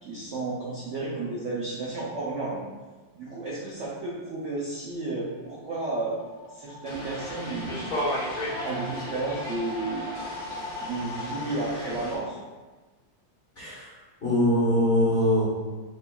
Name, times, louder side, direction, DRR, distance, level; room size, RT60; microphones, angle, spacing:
voice 1, 0.0-2.6 3.2-6.2 6.5-7.8 8.6-10.0 10.8-12.4, right 2 dB, 70° right, -5 dB, 0.7 m, -32 dB
sound 1, 5.3-11.4, left 4 dB, 90° left, 1.5 m, -41 dB
sound 2, 6.9-12.1, equal, 55° left, 1.7 m, -34 dB
voice 2, 13.6-13.9 14.2-15.4, equal, 30° left, -8 dB, 1.1 m, -22 dB
7.4 x 2.9 x 2.3 m, 1.3 s
omnidirectional pair, 2.2 m